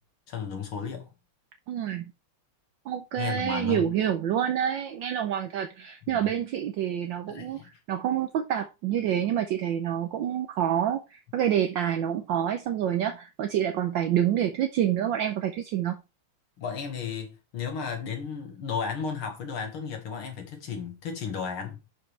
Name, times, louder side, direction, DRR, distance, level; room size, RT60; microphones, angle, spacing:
voice 1, 0.3-1.1 3.2-3.9 6.1-6.3 7.3-7.7 16.6-21.8, left 6 dB, 75° left, 2.6 m, -34 dB
voice 2, 1.7-2.0 2.9-7.6 7.9-16.0, right 10 dB, 70° right, 1.3 m, -27 dB
11.0 x 4.9 x 3.3 m
omnidirectional pair, 2.4 m